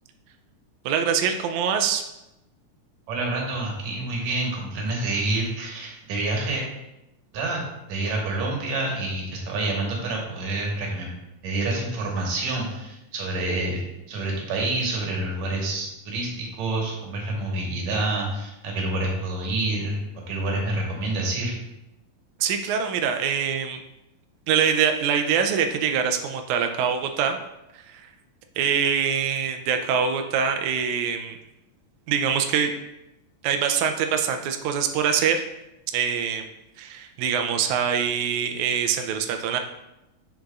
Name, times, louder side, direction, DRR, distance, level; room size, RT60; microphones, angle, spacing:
voice 1, 0.8-2.0 22.4-23.8 24.5-27.4 27.7-28.1 28.6-31.4 32.1-32.7 33.4-35.4 35.9-36.5 36.8-39.6, right 7 dB, 90° right, 5 dB, 1.6 m, -24 dB
voice 2, 3.1-6.6 7.3-7.6 7.9-11.1 11.4-13.8 14.1-20.0 20.3-21.5, right 2 dB, 65° right, -1 dB, 2.3 m, -27 dB
8.6 x 5.2 x 2.3 m, 0.92 s
omnidirectional pair, 3.9 m